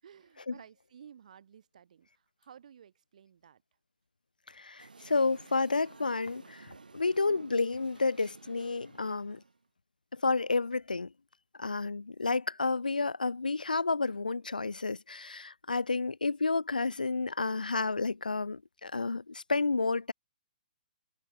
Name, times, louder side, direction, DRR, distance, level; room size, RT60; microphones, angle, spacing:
voice 1, 0.0-3.6, right 8 dB, 60° right, 4.7 m, -55 dB
voice 2, 4.5-9.4 10.1-11.1 11.6-20.1, left 3 dB, 90° left, 0.5 m, -31 dB
sound 1, 4.8-9.6, right 4 dB, 85° right, 2.6 m, -53 dB
figure-of-eight pair, 130°, 4 cm